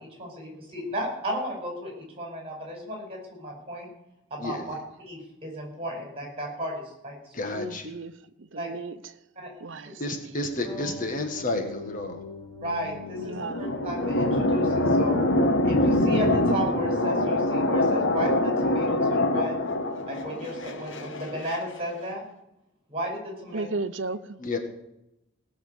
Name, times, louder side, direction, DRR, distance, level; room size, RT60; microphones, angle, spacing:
voice 1, 0.0-3.9 4.3-4.8 5.1-7.1 7.5-7.6 8.6-8.7 9.4-9.5 12.6-15.2 15.6-19.5 20.1-22.2 22.9-23.7, equal, 30° right, 1 dB, 5.5 m, -34 dB
voice 2, 4.4-4.8 7.3-7.9 10.0-12.2 24.4-24.6, left 2 dB, 40° left, 5 dB, 1.8 m, -31 dB
voice 3, 7.6-8.1 8.5-9.0 9.6-10.6 13.2-13.6 23.5-24.4, right 3 dB, 65° right, 12 dB, 0.8 m, -35 dB
sound 1, 10.6-17.7, left 4 dB, 25° left, 2.9 m, -43 dB
sound 2, 13.0-21.6, left 1 dB, 70° left, 1.5 m, -24 dB
17.5 x 6.6 x 8.2 m, 0.84 s
head